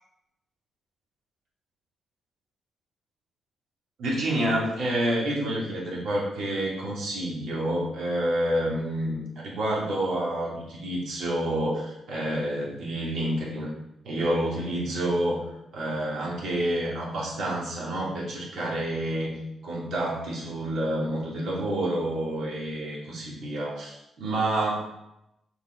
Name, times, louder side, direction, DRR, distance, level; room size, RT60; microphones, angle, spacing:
voice 1, 4.0-13.7 14.0-24.9, right 1 dB, 70° right, -4 dB, 3.3 m, -28 dB
7.3 x 5.9 x 4.9 m, 0.86 s
wide cardioid pair, 165°, 0 cm